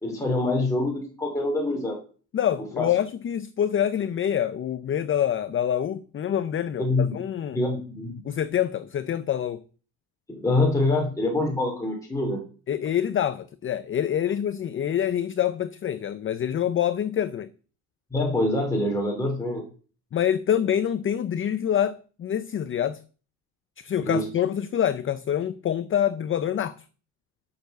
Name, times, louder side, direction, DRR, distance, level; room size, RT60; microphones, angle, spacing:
voice 1, 0.0-2.0 2.8-2.9 6.8-7.2 7.5-8.2 10.3-12.4 18.1-19.6 24.0-24.3, left 2 dB, 10° left, 3.0 m, -25 dB
voice 2, 2.3-7.6 8.2-9.6 12.7-17.5 20.1-23.0 23.8-26.8, left 10 dB, 30° left, 0.6 m, -26 dB
12.0 x 6.7 x 6.6 m
cardioid pair, 130°, 39 cm